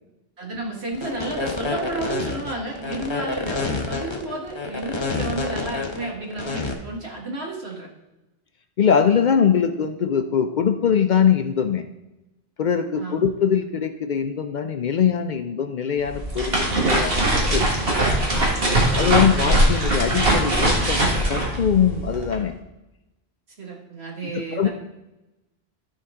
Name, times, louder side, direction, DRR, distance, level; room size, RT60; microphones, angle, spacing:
voice 1, 0.4-7.9 13.0-13.3 18.7-19.2 23.6-24.7, right 2 dB, 80° right, -1 dB, 1.9 m, -32 dB
sound 1, 0.9-6.7, left 4 dB, 30° left, 0.8 m, -28 dB
voice 2, 8.8-11.8 12.6-17.2 17.5-17.7 19.0-22.6 24.2-24.7, left 7 dB, 55° left, 8 dB, 0.5 m, -22 dB
sound 2, 16.0-22.4, right 1 dB, 65° right, 1.9 m, -21 dB
12.5 x 4.7 x 3.6 m, 0.97 s
omnidirectional pair, 1.1 m